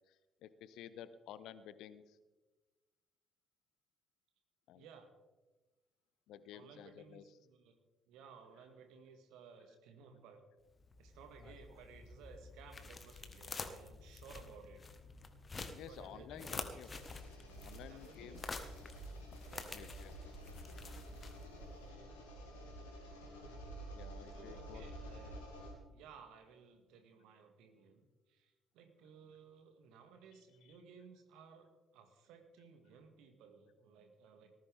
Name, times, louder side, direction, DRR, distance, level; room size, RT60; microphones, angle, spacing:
voice 1, 0.1-2.2 4.7-4.9 6.3-7.3 15.7-16.9 17.6-18.4 19.6-20.2 23.9-24.9 30.6-30.8, left 10 dB, 60° left, 15 dB, 0.8 m, -53 dB
voice 2, 4.7-5.1 6.5-7.7 8.1-10.4 11.0-14.9 15.8-16.9 17.9-18.8 19.5-19.9 20.2-20.3 24.4-25.4 25.9-34.5, right 6 dB, 60° right, 6 dB, 2.0 m, -58 dB
sound 1, 10.7-21.7, left 3 dB, 30° left, 1.6 m, -49 dB
sound 2, 16.9-25.7, right 1 dB, 75° left, 2.6 m, -50 dB
19.0 x 15.0 x 3.6 m, 1.2 s
figure-of-eight pair, 45°, 0 cm